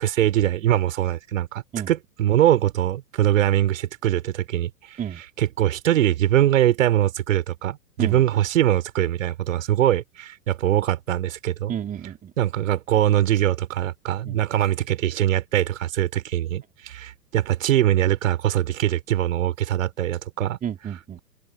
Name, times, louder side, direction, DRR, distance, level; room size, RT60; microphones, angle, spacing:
voice 1, 0.0-5.0 5.4-11.7 12.4-20.6, right 12 dB, 50° right, 5.1 m, -22 dB
voice 2, 11.7-12.3 14.2-14.4 20.6-21.2, right 9 dB, 15° right, 4.0 m, -31 dB
figure-of-eight pair, 110°, 49 cm